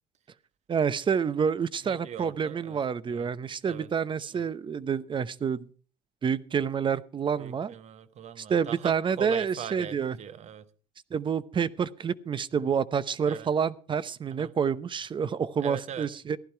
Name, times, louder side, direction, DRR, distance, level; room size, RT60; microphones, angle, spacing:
voice 1, 0.7-5.7 6.2-7.7 8.4-10.2 11.1-16.4, right 7 dB, 35° right, 0.8 m, -28 dB
voice 2, 1.8-2.8 3.1-3.3 3.7-3.9 4.3-4.5 7.4-10.6 13.2-13.5 14.3-14.5 15.6-16.1, right 9 dB, 50° right, 1.2 m, -41 dB
15.5 x 11.5 x 4.6 m
supercardioid pair, 80°, 14 cm